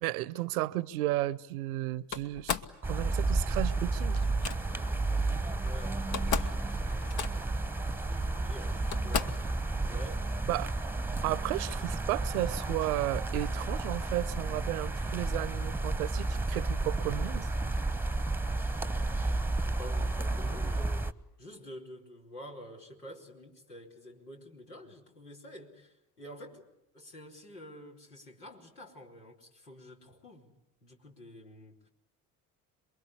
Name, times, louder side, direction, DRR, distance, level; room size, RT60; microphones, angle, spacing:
voice 1, 0.0-4.2 10.5-10.8 11.2-17.5, right 16 dB, 70° right, 0.9 m, -33 dB
Slam, 2.1-2.8 4.1-4.6 5.7-5.8 6.0-6.6 6.9-7.6 8.3-8.4 8.9-9.5, left 7 dB, 55° left, 1.5 m, -35 dB
sound 1, 2.8-21.1, right 2 dB, 5° right, 1.1 m, -32 dB
voice 2, 4.7-7.5 8.0-9.5 9.8-10.3 18.8-21.1 21.4-26.7 26.9-30.5 30.8-31.9, equal, 85° left, 3.7 m, -49 dB
27.5 x 23.0 x 8.4 m
figure-of-eight pair, 55°, 46 cm